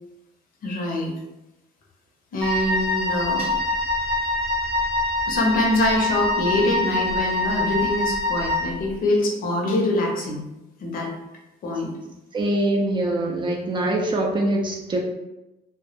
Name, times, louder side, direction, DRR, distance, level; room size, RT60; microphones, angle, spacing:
voice 1, 0.6-1.1 2.3-3.5 5.3-10.4 10.8-11.1 11.6-11.9, left 2 dB, 55° left, 0 dB, 0.7 m, -24 dB
Wind instrument woodwind instrument, 2.4-8.8, left 2 dB, 5° left, 0.7 m, -24 dB
voice 2, 12.3-15.0, right 1 dB, 30° right, 0 dB, 0.4 m, -23 dB
2.1 x 2.1 x 2.9 m, 0.96 s
cardioid pair, 110°, 17 cm